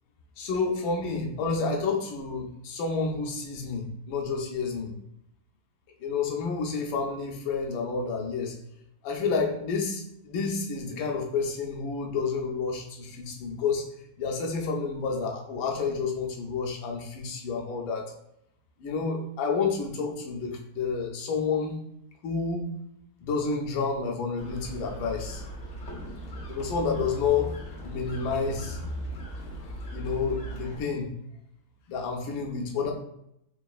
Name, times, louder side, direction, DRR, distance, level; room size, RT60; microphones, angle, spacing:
voice 1, 0.4-4.9 6.0-8.5 9.0-13.8 14.2-18.1 18.8-21.8 22.2-22.7 23.2-25.4 26.5-27.5 27.8-28.8 29.9-31.1 31.9-32.9, left 5 dB, 75° left, 1 dB, 1.4 m, -29 dB
sound 1, 24.4-30.8, equal, 60° left, 0.7 m, -38 dB
3.9 x 3.8 x 2.3 m, 0.76 s
omnidirectional pair, 2.2 m